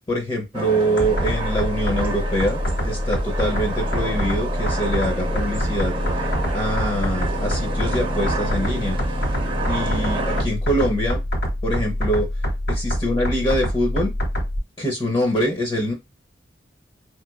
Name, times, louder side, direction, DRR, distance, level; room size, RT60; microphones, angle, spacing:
voice 1, 0.1-5.9 6.5-9.0 9.7-11.2 11.6-12.3 12.7-14.1 14.8-15.9, equal, 25° left, 2 dB, 0.6 m, -24 dB
sound 1, 0.5-10.4, right 2 dB, 30° right, 0.6 m, -30 dB
sound 2, 1.0-14.6, equal, 80° left, 1.7 m, -25 dB
3.0 x 3.0 x 2.3 m, 0.22 s
head